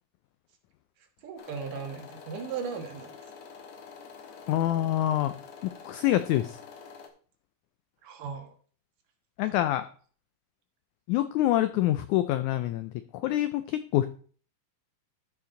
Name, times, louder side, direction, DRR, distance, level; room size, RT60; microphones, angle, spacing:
voice 1, 1.2-3.1 8.0-8.6, right 6 dB, 75° right, 4 dB, 3.0 m, -37 dB
sound 1, 1.4-7.1, left 5 dB, 60° left, 2.2 m, -47 dB
voice 2, 4.5-5.3 5.6-6.6 9.4-9.9 11.1-14.1, left 13 dB, 85° left, 11 dB, 1.7 m, -26 dB
13.0 x 5.8 x 3.9 m, 0.43 s
omnidirectional pair, 4.0 m